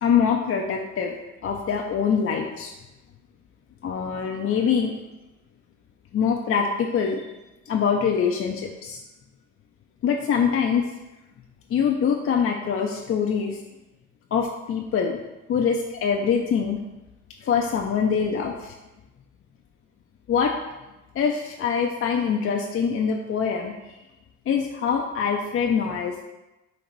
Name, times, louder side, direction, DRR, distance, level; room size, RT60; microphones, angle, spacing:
voice 1, 0.0-1.2 1.4-2.7 3.8-4.9 6.1-7.4 7.7-9.0 10.0-10.8 11.7-13.6 14.3-15.2 15.5-16.8 17.4-18.7 20.3-20.5 21.2-23.7 24.5-26.2, left 6 dB, 45° left, 2 dB, 0.4 m, -24 dB
4.0 x 2.9 x 4.5 m, 1.0 s
cardioid pair, 90°, 30 cm